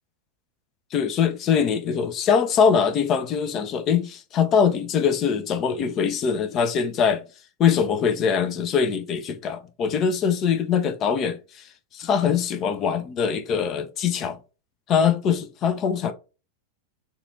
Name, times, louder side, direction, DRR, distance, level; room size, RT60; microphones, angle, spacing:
voice 1, 0.9-7.2 7.6-11.7 11.9-14.4 14.9-16.1, left 7 dB, 35° left, 0.6 m, -22 dB
4.3 x 2.5 x 2.6 m
figure-of-eight pair, 90°, 0 cm